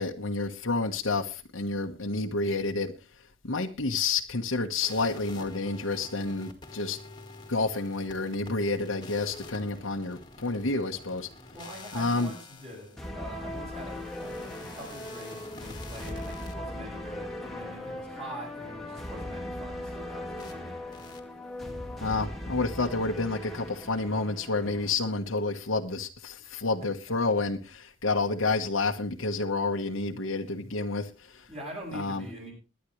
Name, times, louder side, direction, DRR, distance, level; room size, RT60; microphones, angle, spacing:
voice 1, 0.0-2.9 3.2-7.0 7.5-11.3 11.9-12.3 22.0-31.5 31.9-32.2, left 3 dB, 85° left, 2 dB, 1.4 m, -29 dB
sound 1, 4.8-16.5 20.4-20.6 20.9-21.2, left 3 dB, 20° left, 2.0 m, -47 dB
voice 2, 11.5-20.8 26.4-26.5 27.1-27.2 31.5-32.5, equal, 30° right, -3 dB, 7.4 m, -44 dB
sound 2, 13.0-24.9, left 1 dB, ahead, 2.0 m, -39 dB
22.0 x 10.0 x 3.2 m, 0.30 s
head